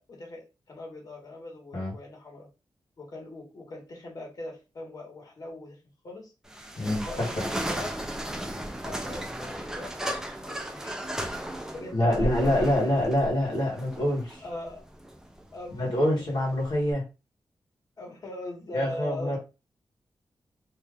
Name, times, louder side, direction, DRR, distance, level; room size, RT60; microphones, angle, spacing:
voice 1, 0.0-2.5 3.0-5.8 6.0-6.3 7.0-8.1 8.8-10.0 10.4-11.0 11.7-12.9 14.4-14.8 15.5-16.4 18.0-19.4, left 1 dB, 50° left, -1 dB, 1.3 m, -40 dB
sound 1, 6.5-16.9, right 1 dB, 5° right, 0.5 m, -35 dB
voice 2, 6.8-7.3 11.9-14.4 15.8-17.0 18.7-19.4, left 1 dB, 65° left, -4 dB, 1.2 m, -26 dB
2.7 x 2.4 x 3.4 m, 0.28 s
wide cardioid pair, 135°, 8 cm